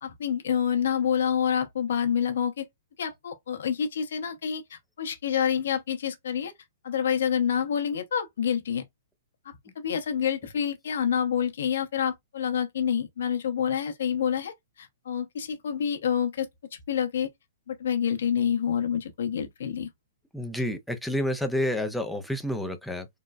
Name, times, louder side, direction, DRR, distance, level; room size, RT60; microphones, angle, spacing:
voice 1, 0.0-2.7 3.0-6.5 6.8-8.8 9.8-16.5 16.9-17.3 17.7-19.9, left 8 dB, 70° left, 0.9 m, -27 dB
voice 2, 20.3-23.1, left 1 dB, ahead, 0.4 m, -29 dB
3.8 x 2.1 x 2.2 m
hypercardioid pair, 160°, 0 cm